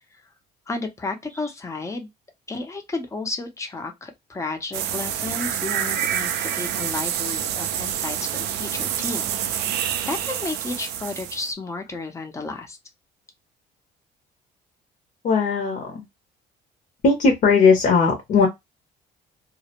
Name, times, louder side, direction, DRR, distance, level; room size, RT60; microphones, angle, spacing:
voice 1, 0.7-2.1 2.5-12.8, left 3 dB, 15° left, 0.6 m, -32 dB
sound 1, 4.7-11.5, right 10 dB, 80° right, 0.4 m, -27 dB
voice 2, 15.2-16.0 17.0-18.5, left 4 dB, 55° left, 0.8 m, -18 dB
2.1 x 2.1 x 2.8 m
cardioid pair, 110°, 17 cm